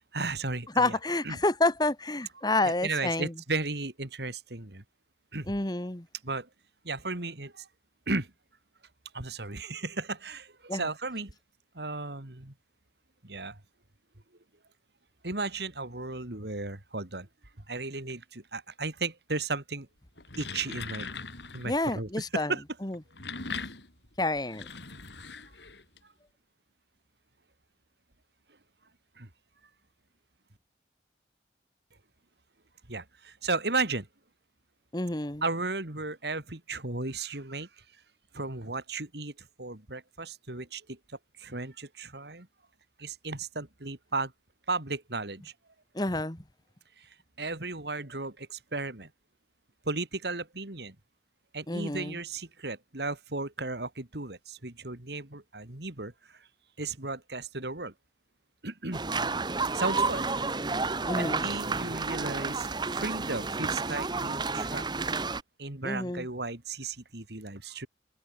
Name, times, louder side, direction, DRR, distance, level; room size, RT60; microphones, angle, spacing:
voice 1, 0.1-1.0 1.2-1.4 2.6-4.8 5.3-5.5 6.2-6.5 6.8-7.7 8.1-8.3 9.1-11.3 11.7-12.5 13.2-13.6 15.2-17.3 17.7-19.9 20.4-21.1 21.5-22.6 29.2-29.3 32.9-34.1 35.4-37.7 38.3-41.0 41.4-42.5 43.0-44.3 44.7-45.5 47.0-49.1 49.8-51.0 51.5-56.5 56.8-57.9 58.6-59.1 59.7-60.3 61.2-64.8 65.6-67.9, right 3 dB, 65° right, 2.7 m, -35 dB
voice 2, 0.7-3.3 5.5-6.1 10.7-10.8 21.6-22.5 22.8-23.0 24.2-24.7 34.9-35.4 45.9-46.4 51.7-52.2 61.1-61.5 65.8-66.3, left 2 dB, 25° left, 1.5 m, -29 dB
sound 1, 20.1-21.8 22.9-26.0, left 4 dB, 75° left, 5.0 m, -40 dB
sound 2, 58.9-65.4, right 3 dB, 25° right, 1.1 m, -31 dB
open air
head